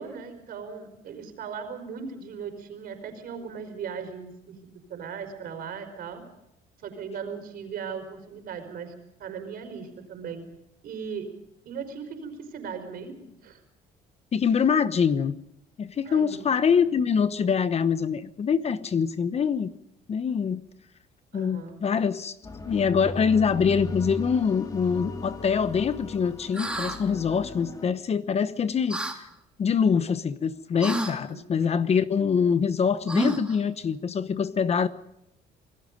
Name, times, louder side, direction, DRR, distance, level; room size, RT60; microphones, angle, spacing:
voice 1, 0.0-4.6 4.9-6.2 6.8-10.4 10.8-11.3 11.6-13.6 16.0-16.5 18.7-18.8 21.3-21.8 31.3-31.5, right 6 dB, 60° right, 7 dB, 5.0 m, -38 dB
voice 2, 14.3-15.3 15.8-19.7 20.1-20.6 21.3-22.4 22.7-29.0 29.6-34.9, left 6 dB, 40° left, 13 dB, 1.0 m, -24 dB
sound 1, 22.4-27.9, left 2 dB, 20° left, 2.4 m, -37 dB
sound 2, 26.5-27.0 28.9-29.2 30.8-31.1 33.1-33.6, right 1 dB, 5° right, 3.0 m, -28 dB
27.5 x 18.5 x 5.3 m, 0.81 s
cardioid pair, 110°, 17 cm